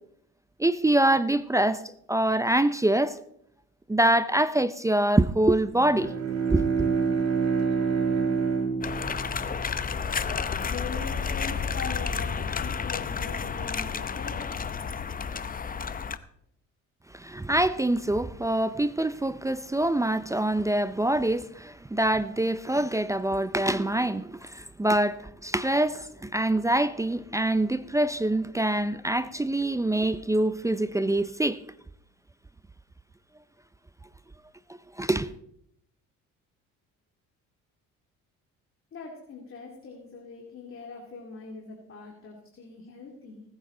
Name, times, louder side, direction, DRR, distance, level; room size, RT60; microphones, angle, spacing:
voice 1, 0.6-1.8 2.1-3.2 3.9-6.1 6.5-6.9 17.1-31.6 35.0-35.3, right 1 dB, 10° right, 0.5 m, -25 dB
Bowed string instrument, 5.7-10.3, right 5 dB, 60° right, 2.3 m, -27 dB
sound 1, 8.8-16.2, left 6 dB, 25° left, 0.7 m, -31 dB
voice 2, 10.5-14.5 38.9-43.4, left 4 dB, 45° left, 2.5 m, -41 dB
19.5 x 8.6 x 3.9 m
supercardioid pair, 80°, 31 cm